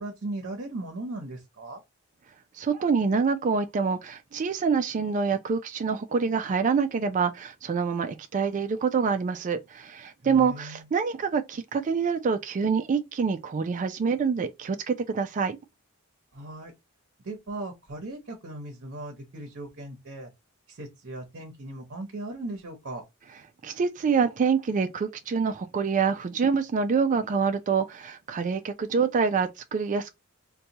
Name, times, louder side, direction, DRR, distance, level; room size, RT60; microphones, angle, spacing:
voice 1, 0.0-1.8 10.2-10.9 16.3-16.7 17.2-20.3 20.7-23.0, right 2 dB, 55° right, 0.8 m, -38 dB
voice 2, 2.5-15.6 23.6-30.1, right 5 dB, 35° right, 0.3 m, -26 dB
4.1 x 2.2 x 2.7 m
head